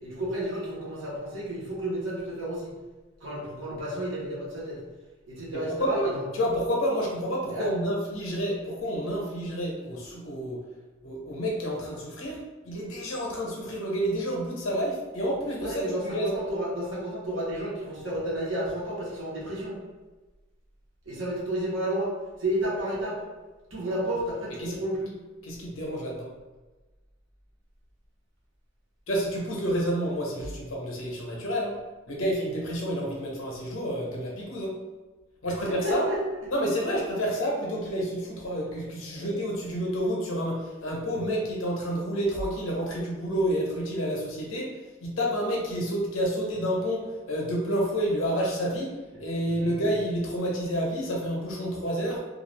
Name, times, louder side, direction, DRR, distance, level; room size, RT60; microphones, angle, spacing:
voice 1, 0.0-2.8 3.2-4.8 5.3-6.2 7.5-7.7 15.6-19.8 21.0-23.2 23.7-25.2 35.7-36.2 39.1-39.2 49.4-49.7, right 1 dB, 70° right, -5 dB, 1.0 m, -31 dB
voice 2, 5.5-10.6 11.0-16.3 24.6-24.7 25.4-26.3 29.1-31.8 32.1-34.8 35.4-36.1 36.5-52.2, equal, 85° left, -2 dB, 0.8 m, -29 dB
2.5 x 2.4 x 3.2 m, 1.2 s
head